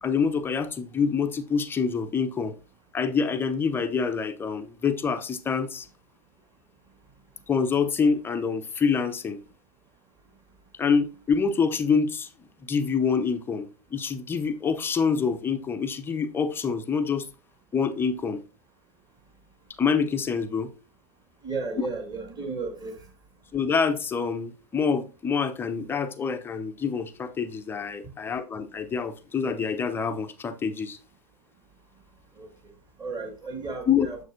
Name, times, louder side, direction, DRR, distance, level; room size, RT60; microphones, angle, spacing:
voice 1, 0.0-2.5 2.9-5.9 7.5-9.4 10.8-12.3 12.6-17.3 17.7-18.4 19.8-20.7 23.5-31.0 33.9-34.1, left 5 dB, 10° left, 0.5 m, -26 dB
voice 2, 21.4-23.0 32.4-32.5 33.0-34.2, right 3 dB, 20° right, 1.8 m, -33 dB
6.9 x 6.4 x 2.6 m
hypercardioid pair, 125°, 20 cm